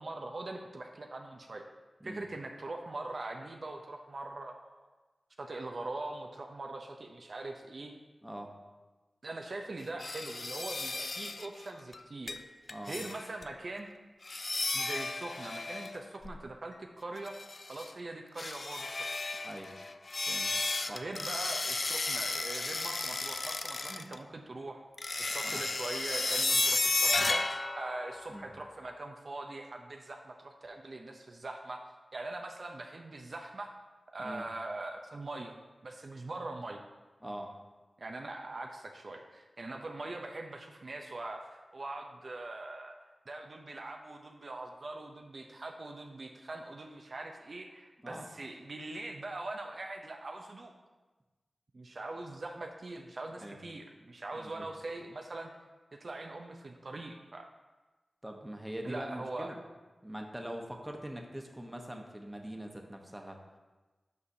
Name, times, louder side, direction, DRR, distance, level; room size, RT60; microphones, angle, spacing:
voice 1, 0.0-1.6 2.0-4.9 5.4-7.9 9.2-12.4 12.8-13.9 14.7-17.4 17.7-19.1 20.9-24.8 25.2-27.4 27.8-31.8 32.1-33.7 34.1-36.8 38.0-42.9 43.3-50.7 51.7-55.5 55.9-57.5 58.8-59.5, right 2 dB, 65° right, 2 dB, 0.6 m, -42 dB
sound 1, 10.0-11.5 11.9-12.0 12.3-12.4 12.7-13.4 14.2-16.4 17.2-17.9 18.4-24.2 25.0-28.6, left 3 dB, 55° left, 0.3 m, -33 dB
voice 2, 37.2-37.5 48.0-48.3 53.4-53.6 54.3-54.6 58.2-59.6 60.0-63.4, equal, 10° right, 2 dB, 1.0 m, -43 dB
8.3 x 4.8 x 2.7 m, 1.2 s
cardioid pair, 40°, 0 cm